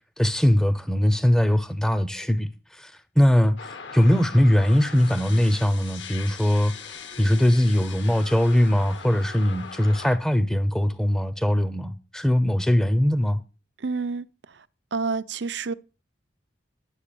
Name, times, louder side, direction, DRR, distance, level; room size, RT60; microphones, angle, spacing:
voice 1, 0.2-13.4, equal, 5° left, 0.7 m, -21 dB
sound 1, 3.6-10.2, left 6 dB, 65° left, 1.6 m, -40 dB
voice 2, 13.8-14.6 14.9-15.7, right 4 dB, 60° right, 0.6 m, -29 dB
11.5 x 7.8 x 6.9 m
head